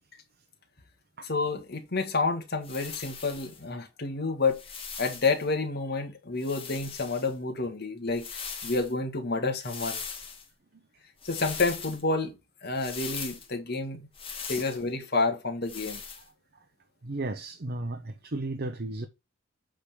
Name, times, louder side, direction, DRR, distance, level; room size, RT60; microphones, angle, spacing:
voice 1, 1.2-4.6 5.0-10.0 11.2-12.4 12.6-14.1 14.5-16.0, left 3 dB, 50° left, 1.8 m, -29 dB
sound 1, 2.6-3.6 4.4-5.4 6.4-7.3 8.1-8.9 9.6-10.5 11.2-12.0 12.8-13.5 14.1-14.8 15.7-16.3, left 6 dB, 30° left, 1.8 m, -40 dB
voice 2, 17.0-19.1, right 2 dB, 50° right, 0.8 m, -34 dB
8.4 x 3.8 x 4.8 m
head